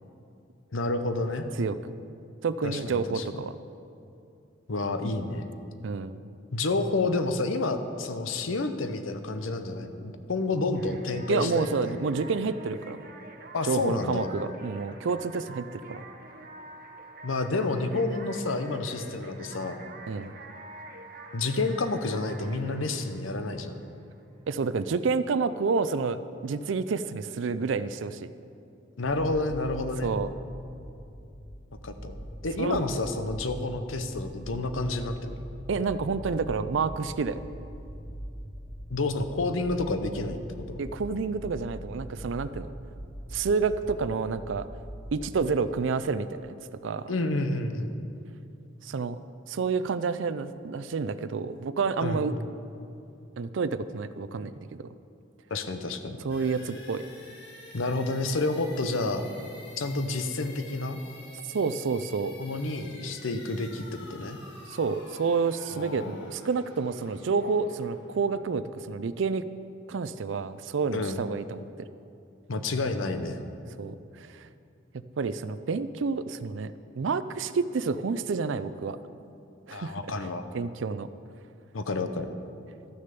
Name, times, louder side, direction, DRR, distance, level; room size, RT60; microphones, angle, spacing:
voice 1, 0.7-1.5 2.6-3.2 4.7-5.4 6.5-12.0 13.5-14.3 17.2-19.8 21.3-23.8 29.0-30.1 31.8-32.1 32.4-35.4 38.9-40.4 40.7-40.8 47.1-48.0 52.0-52.2 55.5-56.2 57.7-59.2 59.8-61.0 62.4-64.4 65.7-66.2 70.9-71.2 72.5-73.4 79.7-80.5 81.7-82.3, left 2 dB, 80° left, 9 dB, 0.8 m, -29 dB
voice 2, 1.6-1.9 2.4-3.6 5.8-6.2 11.3-13.0 13.7-16.0 20.1-20.3 24.5-28.3 30.0-30.3 32.6-32.8 35.7-37.4 40.8-42.7 43.3-44.7 45.1-46.5 46.8-47.1 48.8-49.2 49.5-52.3 53.4-54.5 54.8-54.9 56.2-57.1 61.5-62.4 64.7-69.4 69.9-71.6 73.8-74.5 74.9-79.0 79.7-80.1 80.5-81.1, right 4 dB, 70° right, 14 dB, 0.4 m, -29 dB
sound 1, 10.7-24.2, right 2 dB, 45° right, 0.8 m, -47 dB
sound 2, 29.0-45.4, equal, 25° left, 2.2 m, -42 dB
sound 3, 56.3-70.0, left 2 dB, 60° left, 1.7 m, -49 dB
13.0 x 6.5 x 6.8 m, 2.6 s
head